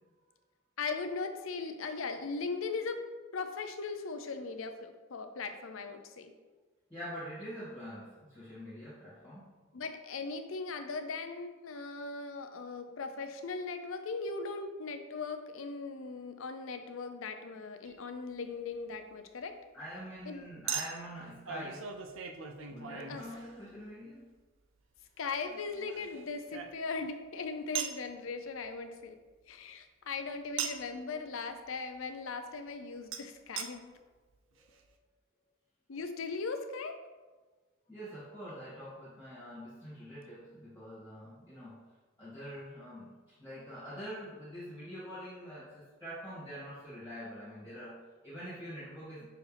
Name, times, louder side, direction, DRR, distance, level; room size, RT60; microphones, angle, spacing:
voice 1, 0.8-3.0 3.3-6.3 9.7-19.6 20.3-20.5 23.1-23.2 25.2-29.2 29.5-34.0 35.9-36.9, left 4 dB, 70° left, 7 dB, 0.6 m, -39 dB
voice 2, 6.9-9.5 19.7-21.9 22.7-24.3 34.6-34.8 37.9-41.8 42.2-49.3, equal, 10° left, -11 dB, 1.9 m, -45 dB
Chink clink, 17.9-18.0 20.7-23.9 25.4-27.1 27.7-28.0 30.6-31.0 33.1-33.2 33.6-33.7 34.3-34.4 34.6-34.7, right 7 dB, 60° right, 0.5 m, -39 dB
6.3 x 4.6 x 3.4 m, 1.3 s
head